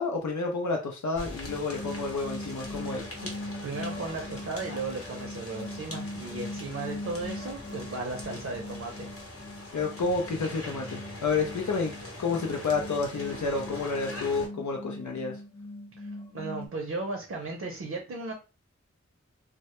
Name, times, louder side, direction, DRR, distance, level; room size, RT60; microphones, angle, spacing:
voice 1, 0.0-3.1 9.7-11.9 12.2-15.4, left 4 dB, 75° left, 1 dB, 0.5 m, -30 dB
sound 1, 1.2-14.5, left 1 dB, 50° left, 0.8 m, -42 dB
sound 2, 1.5-16.7, left 1 dB, 20° left, 0.5 m, -41 dB
voice 2, 3.6-9.3 16.0-18.3, right 3 dB, 55° right, 1 dB, 0.6 m, -36 dB
2.1 x 2.1 x 2.9 m, 0.32 s
wide cardioid pair, 45°, 29 cm